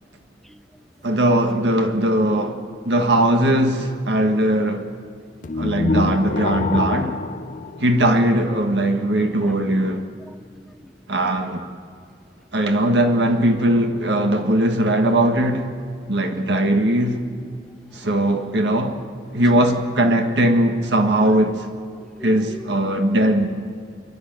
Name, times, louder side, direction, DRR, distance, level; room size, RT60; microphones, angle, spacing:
voice 1, 0.4-0.9 9.4-9.5 10.2-10.9 21.3-21.4 22.0-22.7 23.1-23.2, equal, ahead, 0.7 m, -43 dB
voice 2, 1.0-4.9 5.6-7.2 7.8-10.0 11.1-11.6 12.5-15.7 16.1-17.2 17.9-19.0 19.3-21.7 22.2-23.5, right 1 dB, 80° right, 1.6 m, -19 dB
sound 1, 5.4-8.6, left 3 dB, 45° left, 0.6 m, -25 dB
30.0 x 11.0 x 9.1 m
head